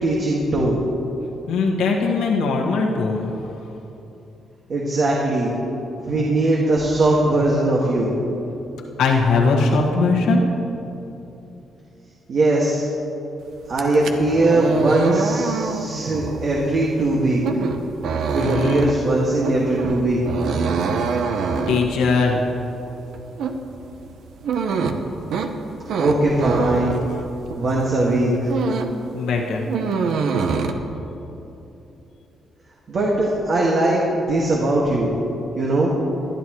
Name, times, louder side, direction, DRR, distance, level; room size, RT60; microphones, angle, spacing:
voice 1, 0.0-0.8 4.7-5.5 6.0-8.1 12.3-12.9 13.7-17.4 18.3-20.2 26.0-26.9 27.6-28.5 32.9-35.1 35.6-35.9, right 2 dB, 55° right, -3 dB, 1.9 m, -20 dB
voice 2, 1.5-3.3 9.0-10.4 18.3-18.9 21.7-22.4 29.1-29.6, left 4 dB, 85° left, -1 dB, 1.6 m, -20 dB
sound 1, 13.7-27.7 28.1-29.0 29.3-30.7, right 5 dB, 75° right, 0.8 m, -25 dB
19.0 x 12.0 x 3.2 m, 3.0 s
cardioid pair, 75°, 0 cm